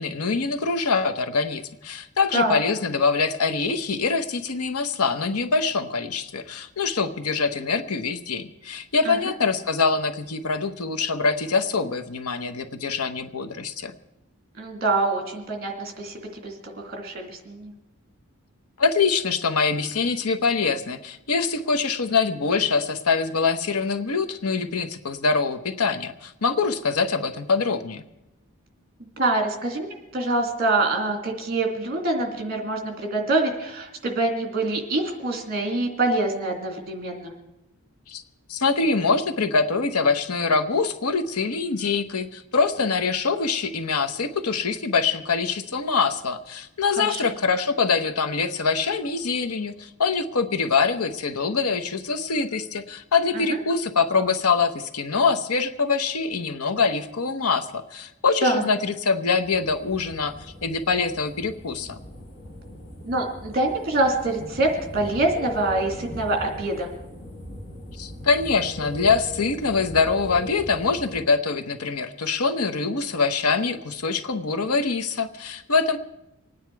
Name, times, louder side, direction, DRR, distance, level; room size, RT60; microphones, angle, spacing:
voice 1, 0.0-13.9 18.8-28.0 38.1-38.2 38.5-62.0 68.0-76.0, left 4 dB, 85° left, 9 dB, 1.0 m, -24 dB
voice 2, 14.6-17.7 29.2-29.9 30.1-37.3 47.0-47.2 53.3-53.6 58.4-58.7 63.0-66.9, right 2 dB, 45° right, 2 dB, 2.5 m, -25 dB
sound 1, 59.4-71.2, left 1 dB, 60° left, 4.3 m, -40 dB
25.5 x 9.6 x 4.7 m, 0.94 s
head